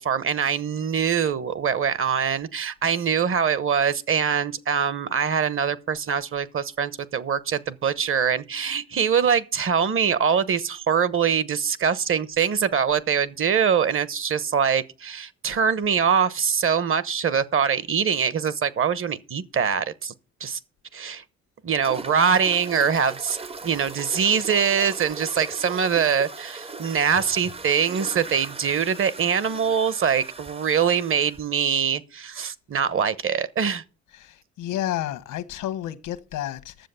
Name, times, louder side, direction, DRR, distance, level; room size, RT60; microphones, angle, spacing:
voice 1, 0.0-20.1 20.4-20.6 20.9-21.2 21.6-23.4 23.6-33.8, right 7 dB, 45° right, 1.0 m, -23 dB
sound 1, 21.8-31.4, right 3 dB, 20° right, 0.6 m, -39 dB
voice 2, 34.1-36.9, left 12 dB, 85° left, 1.2 m, -31 dB
10.5 x 7.3 x 6.9 m
cardioid pair, 90°, 30 cm